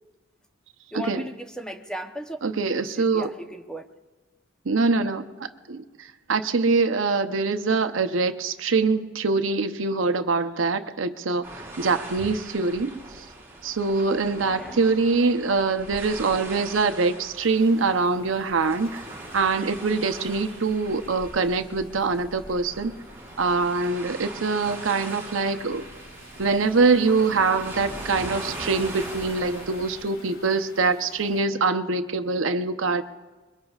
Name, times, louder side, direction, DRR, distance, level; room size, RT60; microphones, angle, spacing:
voice 1, 0.9-2.4 2.7-3.8 14.4-14.8, equal, 5° left, 5 dB, 0.8 m, -36 dB
voice 2, 2.4-3.3 4.7-5.3 5.7-13.2 13.6-19.0 19.3-22.9 23.4-25.8 26.4-33.0, right 4 dB, 85° right, 9 dB, 0.8 m, -24 dB
sound 1, 11.4-30.1, right 1 dB, 15° right, 4.0 m, -40 dB
Waves surf, 17.4-31.5, left 2 dB, 85° left, 3.5 m, -49 dB
26.5 x 22.5 x 2.4 m, 1.3 s
head